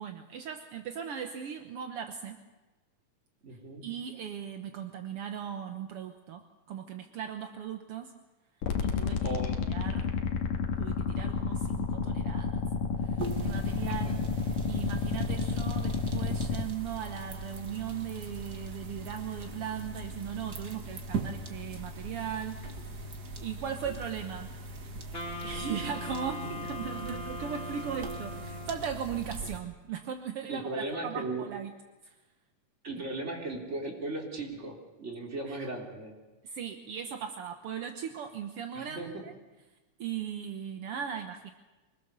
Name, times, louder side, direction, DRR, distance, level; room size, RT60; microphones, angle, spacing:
voice 1, 0.0-2.4 3.8-8.1 8.8-10.1 10.8-12.6 13.0-14.2 14.7-23.1 23.4-24.5 25.4-31.7 32.0-32.2 35.5-35.7 36.4-39.3 40.0-41.5, right 8 dB, 65° right, 6 dB, 1.5 m, -38 dB
voice 2, 3.4-3.8 9.2-9.6 14.0-14.1 30.5-31.5 32.8-36.1 38.7-39.1, right 2 dB, 20° right, 0 dB, 3.5 m, -37 dB
sound 1, 8.6-16.6, left 5 dB, 75° left, 3.0 m, -31 dB
sound 2, 13.2-29.6, right 2 dB, 45° right, 1.3 m, -41 dB
Wind instrument woodwind instrument, 25.1-29.0, left 1 dB, 20° left, 1.9 m, -40 dB
25.0 x 20.5 x 6.8 m, 1.1 s
omnidirectional pair, 4.0 m